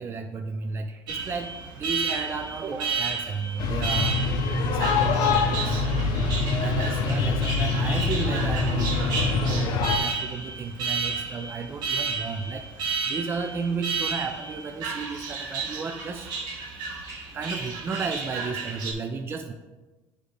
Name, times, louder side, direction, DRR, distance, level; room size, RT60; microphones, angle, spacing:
voice 1, 0.0-4.2 4.7-5.8 6.5-9.6 10.0-12.7 13.1-16.3 17.3-19.5, right 4 dB, 30° right, 6 dB, 0.4 m, -33 dB
Alarm, 1.1-18.9, right 5 dB, 60° right, 1.3 m, -32 dB
sound 1, 3.6-10.0, left 4 dB, 60° left, 0.7 m, -24 dB
9.7 x 3.3 x 3.2 m, 1.2 s
supercardioid pair, 100°, 8 cm